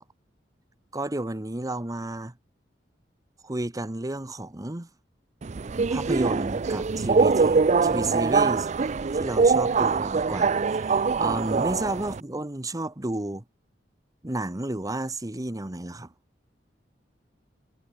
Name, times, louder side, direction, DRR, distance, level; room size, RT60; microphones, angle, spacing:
voice 1, 0.9-2.3 3.4-4.9 5.9-13.4 14.2-16.1, right 1 dB, 20° right, 1.0 m, -32 dB
Subway metro underground, 5.4-12.2, right 4 dB, 40° right, 0.5 m, -23 dB
head